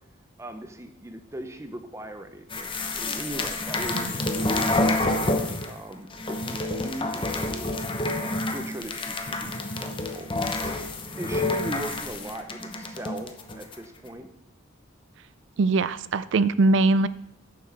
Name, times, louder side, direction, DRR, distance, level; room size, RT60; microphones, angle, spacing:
voice 1, 0.4-5.1 5.6-7.8 8.2-10.6 11.2-14.3, right 1 dB, 15° right, 7 dB, 0.6 m, -39 dB
sound 1, 2.5-5.8 6.1-13.8, left 2 dB, 25° left, 0.8 m, -28 dB
voice 2, 15.6-17.1, right 3 dB, 65° right, 16 dB, 0.4 m, -21 dB
9.0 x 6.7 x 4.6 m, 0.81 s
head